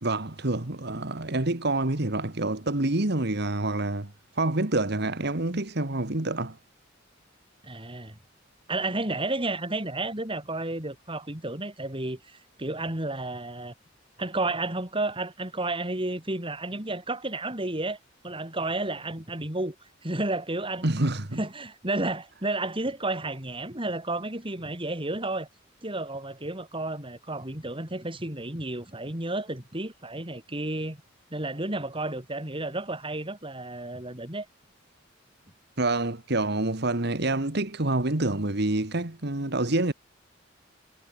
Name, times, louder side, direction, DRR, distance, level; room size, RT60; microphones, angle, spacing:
voice 1, 0.0-4.1 4.4-6.6 20.8-21.4 35.8-39.9, right 2 dB, 60° right, 1.9 m, -27 dB
voice 2, 7.6-8.2 8.7-13.7 14.2-18.0 18.2-19.7 20.0-21.0 21.4-25.5 25.8-31.0 31.3-34.5, right 2 dB, 25° right, 4.9 m, -32 dB
head